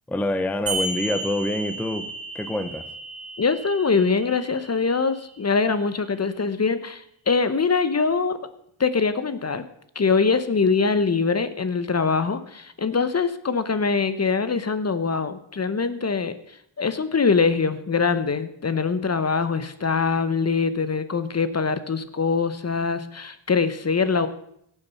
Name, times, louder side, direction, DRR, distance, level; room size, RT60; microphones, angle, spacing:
voice 1, 0.1-2.9, left 1 dB, 5° left, 10 dB, 0.6 m, -26 dB
sound 1, 0.7-5.7, right 3 dB, 45° right, 2.6 m, -34 dB
voice 2, 3.4-8.4 8.8-9.6 10.0-16.3 16.8-24.3, left 5 dB, 30° left, 13 dB, 0.8 m, -23 dB
16.5 x 7.2 x 5.5 m, 0.74 s
wide cardioid pair, 110°, 48 cm